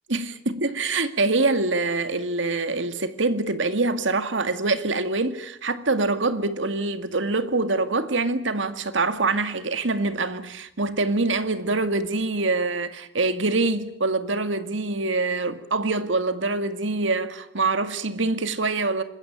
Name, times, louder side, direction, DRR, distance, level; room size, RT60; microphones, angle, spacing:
voice 1, 0.1-19.0, right 3 dB, 85° right, 2.1 m, -25 dB
26.5 x 21.0 x 8.8 m
head